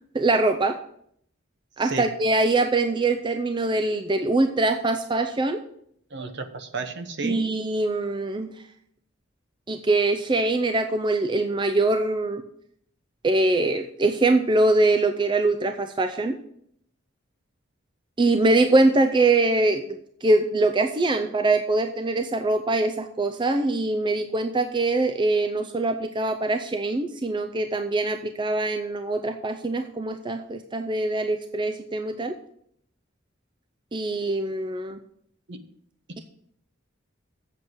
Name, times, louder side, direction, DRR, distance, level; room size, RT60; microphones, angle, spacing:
voice 1, 0.1-0.8 1.8-5.6 7.2-8.5 9.7-12.4 13.2-16.4 18.2-32.3 33.9-35.0, right 2 dB, 25° right, 7 dB, 0.5 m, -23 dB
voice 2, 6.1-7.5 35.5-35.6, right 3 dB, 60° right, 9 dB, 1.0 m, -33 dB
7.6 x 7.5 x 6.2 m, 0.69 s
head